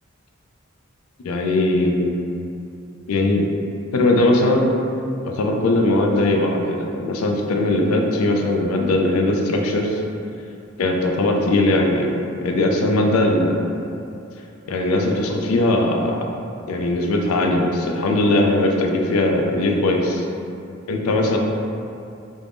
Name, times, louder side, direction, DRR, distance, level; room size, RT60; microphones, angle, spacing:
voice 1, 1.2-2.1 3.1-3.4 3.9-4.7 5.2-10.0 10.8-13.6 14.7-16.3 16.7-20.3 20.9-21.4, left 2 dB, 85° left, 2 dB, 0.4 m, -19 dB
3.4 x 2.1 x 2.5 m, 2.7 s
head